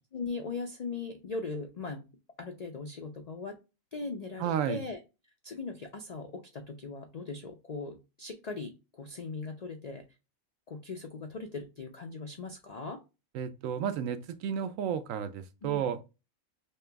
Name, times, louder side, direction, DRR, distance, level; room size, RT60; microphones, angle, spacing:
voice 1, 0.1-2.1 2.4-3.6 3.9-5.0 5.4-10.0 10.7-13.0 15.6-15.9, left 4 dB, 75° left, 0.3 m, -39 dB
voice 2, 4.4-4.8 13.3-16.0, right 8 dB, 75° right, 1.0 m, -32 dB
3.2 x 2.9 x 3.3 m
omnidirectional pair, 1.4 m